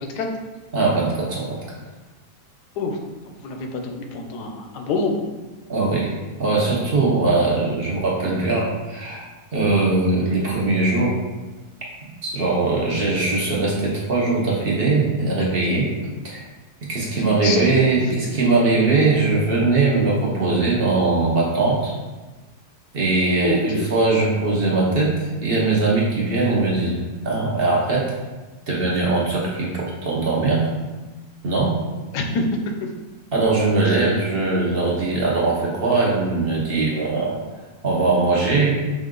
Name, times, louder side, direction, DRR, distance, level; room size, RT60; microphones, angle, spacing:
voice 1, 0.7-1.6 5.7-6.1 6.4-9.2 9.5-11.1 12.2-15.9 16.2-16.4 16.9-21.9 22.9-28.1 28.7-30.7 31.4-31.8 33.3-37.4 37.8-38.8, right 3 dB, 45° right, -5 dB, 0.9 m, -20 dB
voice 2, 3.4-5.2 17.0-17.6 23.4-23.8 32.1-32.4 33.8-33.9, left 3 dB, 85° left, 3 dB, 1.2 m, -26 dB
5.5 x 2.5 x 3.7 m, 1.2 s
omnidirectional pair, 1.7 m